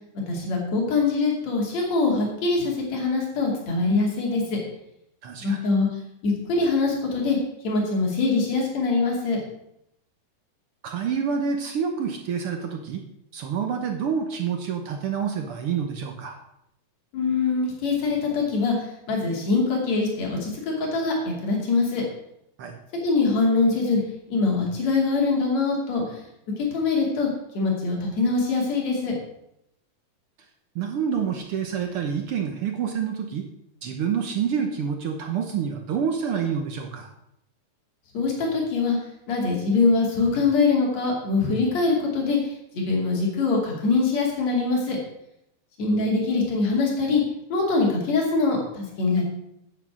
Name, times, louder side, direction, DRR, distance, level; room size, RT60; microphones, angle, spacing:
voice 1, 0.3-4.6 5.4-5.9 6.2-7.4 7.6-9.4 17.1-22.0 23.0-24.0 24.3-26.2 26.6-27.3 27.5-29.1 38.1-39.0 39.3-45.0 45.8-47.2 47.5-49.2, left 3 dB, 60° left, -1 dB, 3.8 m, -23 dB
voice 2, 5.2-5.6 10.8-13.0 13.3-16.4 22.6-22.8 30.7-33.5 33.8-37.1, right 7 dB, 65° right, 4 dB, 1.5 m, -27 dB
9.0 x 8.1 x 6.1 m, 0.80 s
omnidirectional pair, 3.5 m